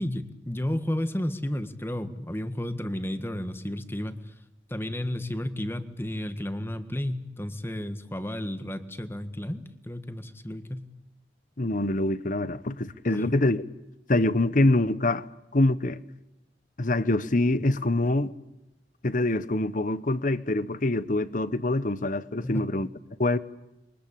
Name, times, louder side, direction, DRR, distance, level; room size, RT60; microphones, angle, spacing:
voice 1, 0.0-4.3 4.7-10.9 13.1-13.2 22.4-22.7, left 1 dB, 15° left, 1.6 m, -32 dB
voice 2, 11.6-13.6 14.1-15.3 15.5-16.0 16.8-18.3 19.0-22.9 23.2-23.4, left 2 dB, 45° left, 1.1 m, -25 dB
27.5 x 23.5 x 8.8 m
head